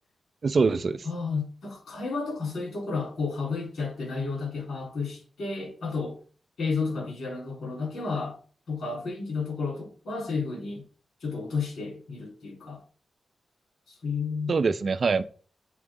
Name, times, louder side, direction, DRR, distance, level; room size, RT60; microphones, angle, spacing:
voice 1, 0.4-1.1 14.5-15.2, right 4 dB, 40° right, 0.4 m, -24 dB
voice 2, 1.0-6.2 6.6-8.4 8.7-10.8 11.2-12.8 13.9-14.6, left 4 dB, 85° left, 3.6 m, -32 dB
7.7 x 4.0 x 3.7 m
wide cardioid pair, 175°, 0 cm